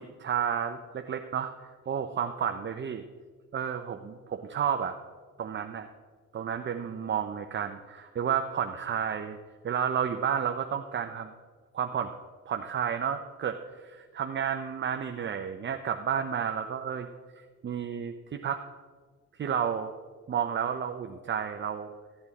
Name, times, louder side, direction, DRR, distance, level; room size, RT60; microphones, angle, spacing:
voice 1, 0.2-1.5 1.9-3.0 3.5-5.0 5.4-5.9 6.3-9.4 9.6-11.3 11.7-12.2 12.5-17.1 17.6-18.6 19.4-19.9 20.3-21.9, right 8 dB, 40° right, 5 dB, 0.7 m, -31 dB
15.0 x 8.6 x 4.2 m, 1.5 s
cardioid pair, 90°, 30 cm